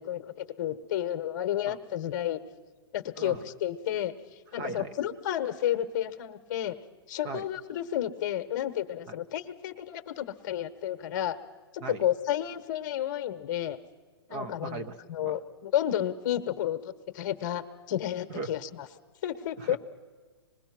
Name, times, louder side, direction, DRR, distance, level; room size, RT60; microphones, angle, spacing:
voice 1, 0.0-2.4 2.9-6.8 7.1-11.4 12.0-13.8 14.3-18.9 19.2-19.8, left 11 dB, 45° left, 9 dB, 1.1 m, -31 dB
voice 2, 4.5-4.9 7.2-7.5 9.1-9.2 11.8-12.0 14.3-15.4 18.3-18.5 19.6-19.8, right 4 dB, 35° right, 8 dB, 1.1 m, -38 dB
25.5 x 20.5 x 6.0 m, 1.5 s
hypercardioid pair, 145°, 14 cm